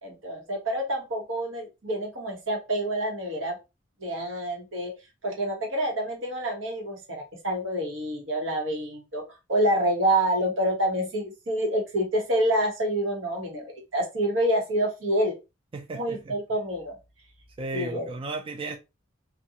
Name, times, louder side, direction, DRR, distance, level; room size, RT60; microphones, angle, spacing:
voice 1, 0.0-3.6 4.0-4.9 5.2-9.2 9.5-15.3 15.9-17.0 17.7-18.1, right 1 dB, 85° right, 1.1 m, -27 dB
voice 2, 15.7-16.4 17.6-18.8, right 3 dB, 30° right, 0.3 m, -34 dB
2.5 x 2.3 x 2.7 m
head